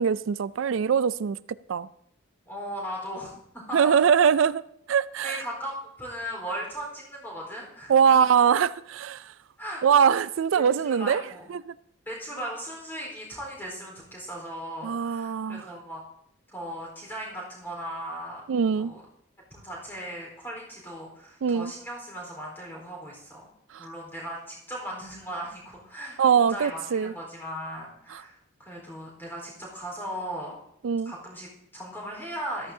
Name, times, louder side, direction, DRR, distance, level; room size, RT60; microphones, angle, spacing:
voice 1, 0.0-1.4 1.7-1.9 3.7-5.4 7.9-9.3 9.8-11.2 11.5-11.7 14.8-15.7 18.5-18.9 21.4-21.7 23.7-23.9 26.2-27.1 28.1-28.2 30.8-31.1, right 7 dB, 75° right, 0.4 m, -22 dB
voice 2, 2.5-3.9 5.2-7.9 9.6-10.2 10.6-11.5 12.1-16.0 16.5-18.4 18.8-19.0 19.5-23.5 23.8-30.5 31.1-32.7, equal, 10° left, 4.1 m, -37 dB
14.0 x 13.0 x 2.7 m
head